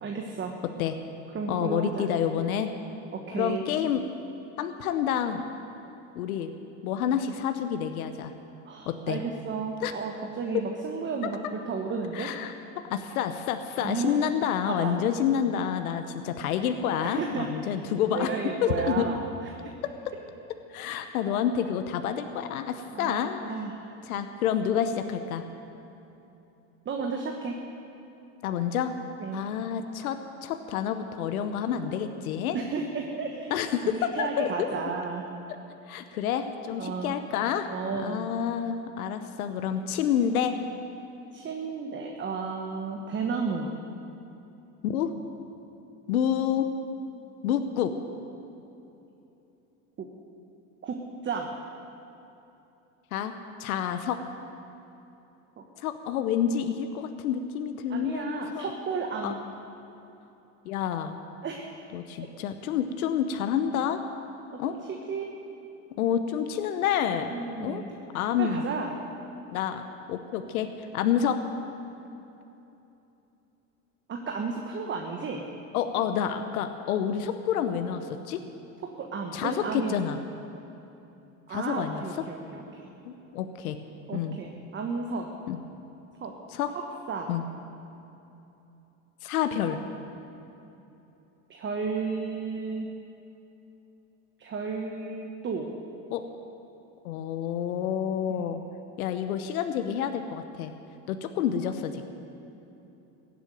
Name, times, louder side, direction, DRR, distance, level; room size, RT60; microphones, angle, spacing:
voice 1, 0.0-0.5 1.3-2.1 3.1-3.6 8.6-12.3 13.8-14.2 14.7-15.0 17.0-17.8 18.1-19.7 22.9-24.0 26.8-27.5 29.2-29.4 32.5-33.5 33.8-35.3 36.8-37.1 37.7-38.3 41.3-43.7 50.0-50.1 50.8-51.5 55.6-55.7 57.9-59.4 61.4-61.9 62.2-62.3 64.6-65.3 67.3-67.9 68.4-69.0 74.1-75.4 78.8-80.0 81.5-82.9 84.1-85.3 86.2-86.3 86.7-87.3 91.5-92.9 94.4-95.7, right 5 dB, 25° right, 2 dB, 1.2 m, -33 dB
voice 2, 1.5-2.7 3.3-4.0 4.6-5.4 6.1-6.5 6.8-8.3 8.9-9.2 9.8-9.9 11.2-11.3 12.1-18.3 18.6-19.1 20.7-23.4 24.1-25.4 28.4-29.0 29.3-32.6 33.5-34.5 35.9-40.6 44.8-45.1 46.1-46.7 47.4-47.9 53.1-53.3 53.6-54.2 55.8-58.8 59.2-59.3 60.6-61.2 61.9-64.0 64.6-64.8 66.0-67.8 68.1-68.7 69.5-69.8 70.1-70.7 70.9-71.4 75.7-78.4 79.3-80.2 81.5-82.0 83.1-83.8 84.1-84.4 85.5-85.6 86.5-86.7 87.3-87.4 89.2-89.8 96.1-96.2 97.0-98.6 99.0-100.7 101.1-102.0, left 8 dB, 90° left, 8 dB, 0.9 m, -28 dB
15.5 x 8.2 x 9.2 m, 2.9 s
supercardioid pair, 115°, 42 cm